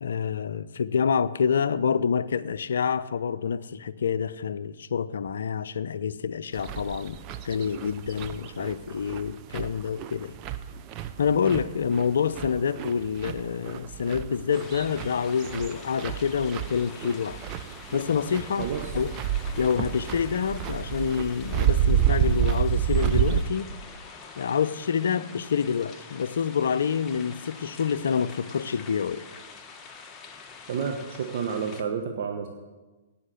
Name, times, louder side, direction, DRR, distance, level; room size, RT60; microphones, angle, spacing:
voice 1, 0.0-7.2 7.4-10.4 11.2-17.4 17.9-19.1 19.6-23.8 24.4-29.3, left 6 dB, 65° left, 0.5 m, -27 dB
sound 1, 6.5-23.4, right 10 dB, 30° right, 0.7 m, -29 dB
sound 2, 14.5-31.8, left 5 dB, 20° left, 1.2 m, -45 dB
voice 2, 18.6-18.9 30.7-32.5, right 6 dB, 55° right, 1.2 m, -30 dB
17.0 x 5.8 x 8.0 m
figure-of-eight pair, 115°, 0 cm